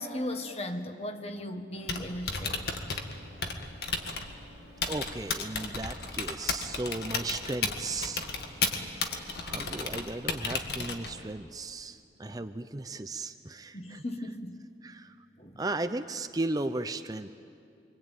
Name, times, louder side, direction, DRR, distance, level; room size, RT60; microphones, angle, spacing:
voice 1, 0.0-2.6 12.2-12.5 13.7-14.6 15.4-15.6, left 1 dB, 35° left, 7 dB, 1.5 m, -37 dB
Typing, 1.7-11.3, left 4 dB, 65° left, 1.9 m, -34 dB
voice 2, 4.9-8.2 8.9-14.0 14.8-15.2 15.6-17.3, right 2 dB, 20° right, 9 dB, 0.6 m, -36 dB
25.0 x 24.5 x 9.2 m, 2.4 s
head